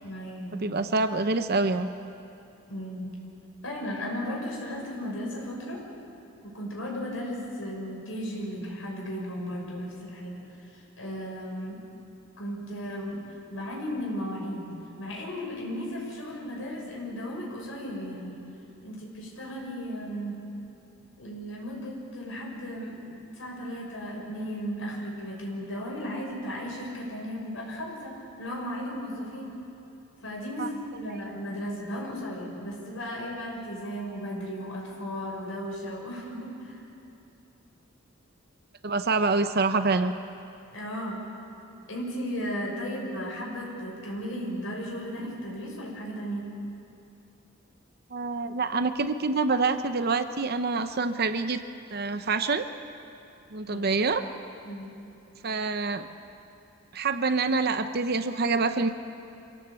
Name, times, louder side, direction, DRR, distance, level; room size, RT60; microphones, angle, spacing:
voice 1, 0.0-0.7 2.7-3.2 3.6-5.8 6.4-11.9 12.4-13.2 13.5-14.7 15.0-18.4 18.8-20.4 21.2-29.5 30.2-36.8 40.7-41.2 41.9-46.5 53.6-53.9 54.6-54.9, equal, 75° left, -2 dB, 6.2 m, -35 dB
voice 2, 0.6-1.9 30.6-30.7 38.8-40.1 48.1-51.6 51.9-52.7 53.5-54.2 55.4-56.1 56.9-58.9, right 3 dB, 50° right, 9 dB, 0.7 m, -26 dB
26.0 x 16.5 x 8.2 m, 2.8 s
head